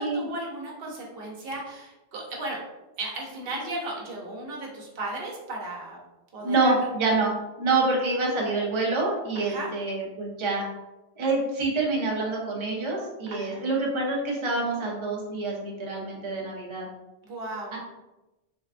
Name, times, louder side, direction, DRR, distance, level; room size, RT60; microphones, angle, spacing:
voice 1, 0.0-2.6 3.0-6.0 6.3-6.7 9.4-9.7 13.3-13.6 17.2-17.7, right 2 dB, 65° right, -2 dB, 0.9 m, -35 dB
voice 2, 6.4-7.3 7.6-10.7 11.2-16.9 17.7-17.8, right 3 dB, 35° right, -2 dB, 0.6 m, -26 dB
3.5 x 2.2 x 2.4 m, 1.0 s
omnidirectional pair, 1.1 m